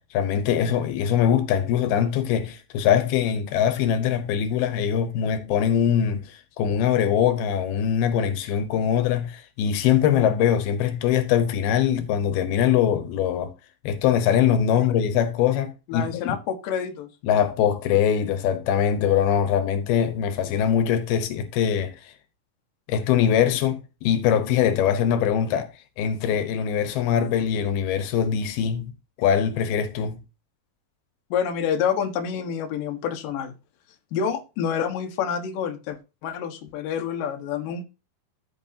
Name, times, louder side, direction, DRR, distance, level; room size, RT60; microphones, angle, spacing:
voice 1, 0.0-13.5 13.8-16.4 17.2-22.1 22.9-25.7 26.0-28.9 29.2-30.2, left 9 dB, 85° left, 2.9 m, -22 dB
voice 2, 15.9-17.1 31.3-33.5 34.1-37.8, left 7 dB, 70° left, 2.8 m, -28 dB
14.5 x 5.9 x 2.8 m
omnidirectional pair, 4.3 m